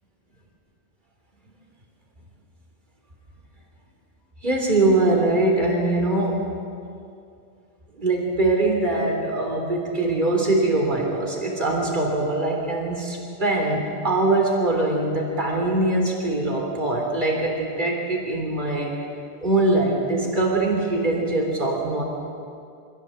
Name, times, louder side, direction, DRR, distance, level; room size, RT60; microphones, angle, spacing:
voice 1, 4.4-6.5 8.0-18.9 19.4-22.0, right 2 dB, 50° right, 0 dB, 3.6 m, -22 dB
25.0 x 14.5 x 7.8 m, 2.5 s
omnidirectional pair, 1.0 m